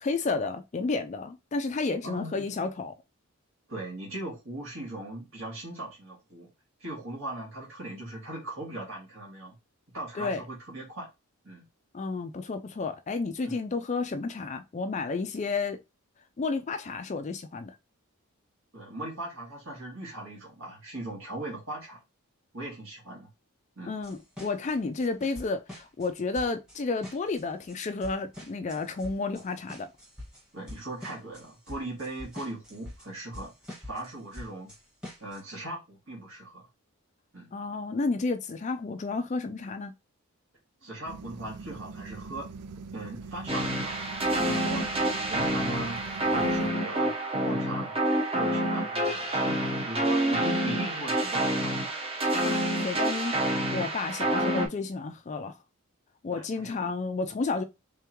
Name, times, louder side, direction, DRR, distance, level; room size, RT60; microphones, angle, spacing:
voice 1, 0.0-2.9 10.2-10.4 11.9-15.8 16.4-17.7 23.9-29.9 37.5-39.9 52.4-55.5 56.2-57.6, left 3 dB, 30° left, 0.3 m, -31 dB
voice 2, 2.0-2.5 3.7-6.5 6.8-9.5 9.9-11.1 11.4-11.6 13.4-13.6 18.7-22.0 22.5-23.3 23.8-23.9 30.5-33.5 33.8-34.7 35.2-36.6 37.3-37.5 40.8-42.5 42.9-44.0 44.3-44.8 45.3-46.0 46.3-47.1 47.4-48.0 48.3-51.7 56.3-56.8, right 1 dB, 60° right, 1.8 m, -39 dB
sound 1, 24.0-26.1 26.3-35.4, left 1 dB, 5° right, 1.5 m, -45 dB
sound 2, 41.0-46.7, right 4 dB, 90° right, 0.4 m, -42 dB
sound 3, 43.5-54.7, right 1 dB, 25° right, 0.9 m, -28 dB
3.8 x 3.5 x 2.9 m
head